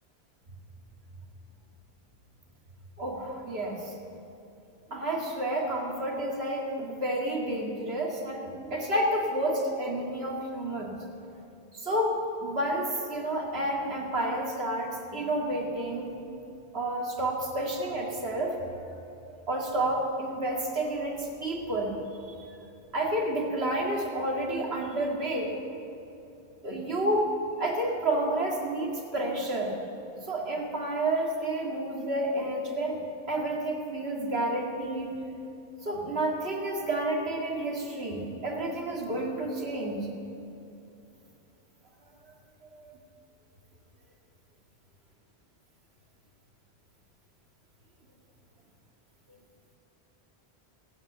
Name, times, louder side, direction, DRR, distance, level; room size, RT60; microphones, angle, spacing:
voice 1, 3.0-3.9 4.9-10.9 11.7-12.2 12.4-16.1 16.7-18.8 19.3-22.4 22.9-25.5 26.6-27.3 27.6-29.8 30.3-33.0 33.3-35.1 35.8-40.0 42.6-42.9, right 1 dB, 65° right, -1 dB, 2.4 m, -30 dB
17.0 x 9.4 x 8.2 m, 2.8 s
omnidirectional pair, 1.1 m